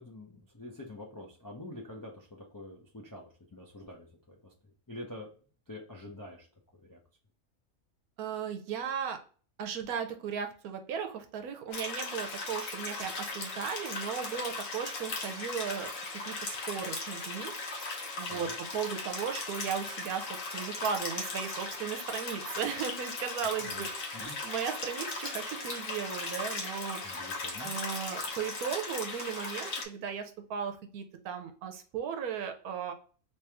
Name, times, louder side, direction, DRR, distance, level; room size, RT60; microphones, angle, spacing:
voice 1, 0.0-5.3 5.7-6.5 6.7-7.0 18.3-18.5 23.5-23.9 24.1-24.4 27.0-27.7, left 1 dB, 35° left, -1 dB, 0.3 m, -46 dB
voice 2, 8.2-9.2 9.6-17.5 18.2-27.0 27.6-32.9, right 7 dB, 80° right, 6 dB, 1.2 m, -36 dB
sound 1, 11.7-29.8, left 3 dB, 60° left, 1.2 m, -38 dB
3.0 x 3.0 x 3.4 m, 0.40 s
omnidirectional pair, 1.5 m